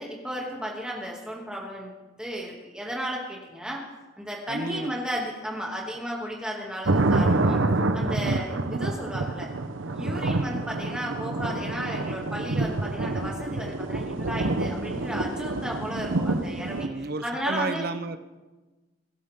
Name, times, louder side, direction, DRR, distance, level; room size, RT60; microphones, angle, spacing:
voice 1, 0.0-1.9 2.2-3.8 4.2-7.6 7.9-9.5 9.9-16.9 17.2-17.9, equal, 5° right, -2 dB, 2.5 m, -34 dB
voice 2, 4.5-4.9 8.2-8.5 16.7-18.2, right 3 dB, 50° right, 11 dB, 0.8 m, -32 dB
sound 1, 6.9-16.9, right 2 dB, 90° right, 0.9 m, -27 dB
23.0 x 12.0 x 3.7 m, 1.2 s
head